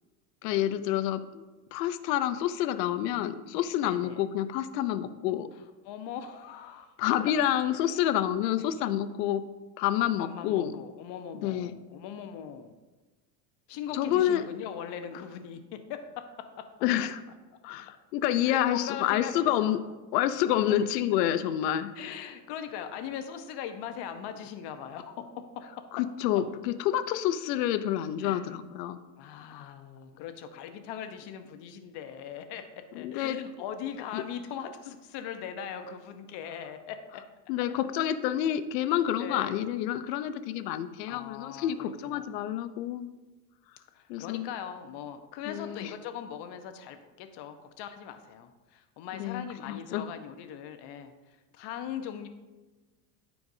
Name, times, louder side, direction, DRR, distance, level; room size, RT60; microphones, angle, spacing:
voice 1, 0.4-1.4 1.7-5.5 7.0-9.4 9.8-10.7 11.4-11.7 13.9-14.5 16.8-17.2 17.6-19.8 20.1-21.9 25.9-29.0 33.0-33.4 34.1-34.2 37.5-43.1 44.1-44.5 45.5-45.9 49.2-50.1, left 11 dB, 80° left, 11 dB, 0.7 m, -28 dB
voice 2, 3.8-4.2 5.8-6.9 7.7-7.9 10.2-12.8 13.7-16.7 17.5-17.6 18.4-19.7 20.6-20.7 21.9-25.8 28.2-28.4 29.2-37.2 39.2-39.5 41.1-42.4 43.9-51.1 51.5-52.3, left 8 dB, 55° left, 8 dB, 1.0 m, -40 dB
13.0 x 4.7 x 2.7 m, 1.2 s
supercardioid pair, 105°, 48 cm